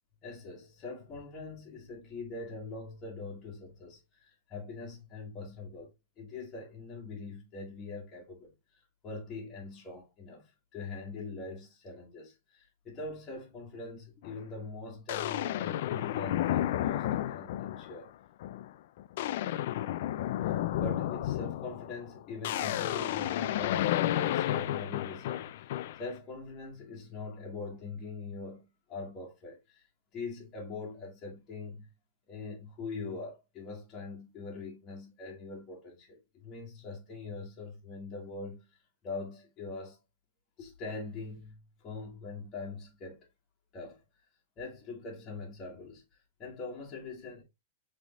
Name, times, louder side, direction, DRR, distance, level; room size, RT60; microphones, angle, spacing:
voice 1, 0.2-5.9 6.2-8.5 9.0-18.1 20.7-29.8 30.1-31.9 32.3-38.6 39.0-40.0 40.6-43.2 43.7-44.0 44.6-46.0 46.4-47.4, left 3 dB, 25° left, 1.7 m, -42 dB
sound 1, 14.2-14.4 15.1-18.0 18.4-18.7 19.0-26.1, left 13 dB, 60° left, 0.3 m, -32 dB
6.1 x 3.4 x 2.4 m
supercardioid pair, 155°, 0 cm